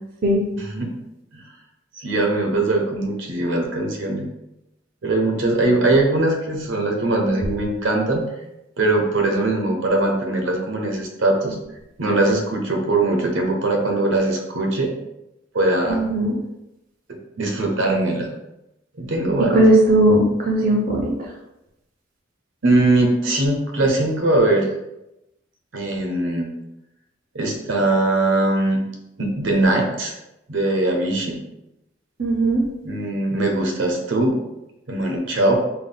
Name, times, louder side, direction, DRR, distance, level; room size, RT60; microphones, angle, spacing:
voice 1, 0.6-0.9 1.3-1.4 2.0-4.3 5.0-8.3 8.8-11.6 12.0-14.9 15.5-16.1 17.1-18.3 19.0-19.6 22.6-24.7 25.7-26.5 27.3-28.8 29.2-30.1 30.5-31.4 32.8-34.4 34.9-35.6, right 2 dB, 75° right, 2 dB, 0.8 m, -21 dB
voice 2, 15.9-16.4 19.5-21.1 32.2-32.6, right 1 dB, 45° right, -1 dB, 0.5 m, -17 dB
3.6 x 2.2 x 3.9 m, 0.90 s
head